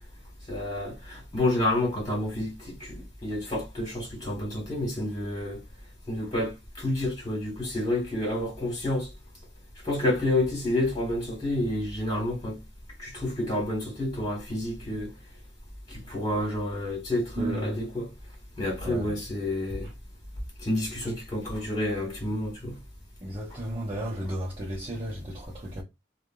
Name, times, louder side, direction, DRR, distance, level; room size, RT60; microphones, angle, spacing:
voice 1, 0.5-3.0 3.2-5.6 6.1-9.1 9.8-12.6 13.0-15.1 15.9-18.1 18.6-19.9 20.6-22.8, left 1 dB, 25° left, 1.7 m, -29 dB
voice 2, 17.4-17.8 18.8-19.2 23.2-25.8, right 1 dB, 30° right, 0.8 m, -34 dB
3.3 x 2.3 x 2.4 m
head